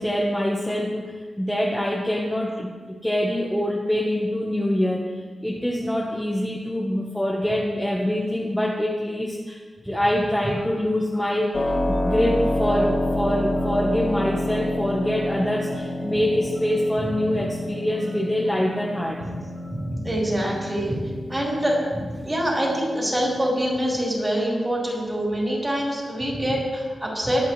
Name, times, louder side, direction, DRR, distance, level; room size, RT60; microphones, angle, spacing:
voice 1, 0.0-2.7 3.0-5.0 5.4-19.2 19.6-19.7, equal, 5° left, -3 dB, 1.3 m, -25 dB
Keyboard (musical), 11.5-24.1, left 1 dB, 35° left, 2.1 m, -29 dB
voice 2, 19.8-21.8 22.2-27.5, equal, 20° right, -5 dB, 4.6 m, -25 dB
22.5 x 9.0 x 3.3 m, 1.5 s
wide cardioid pair, 120°, 0 cm